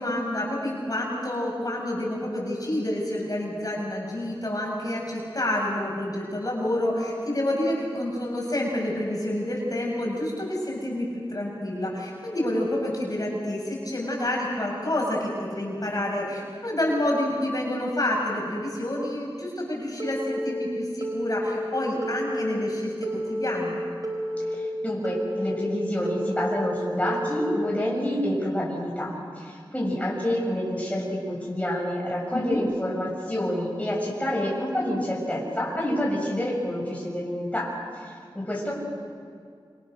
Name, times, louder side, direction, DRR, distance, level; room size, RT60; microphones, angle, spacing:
voice 1, 0.0-23.8 32.3-32.6, left 1 dB, 45° left, -2 dB, 7.7 m, -28 dB
Telephone, 20.0-20.5 21.0-21.5 22.0-22.5 23.0-23.5 24.0-24.6 25.0-25.6 26.1-26.6 27.1-27.6, equal, 45° right, 4.7 m, -30 dB
voice 2, 24.5-38.7, left 1 dB, 15° left, -3 dB, 7.2 m, -28 dB
27.5 x 26.5 x 6.7 m, 2.2 s
wide cardioid pair, 65°, 9 cm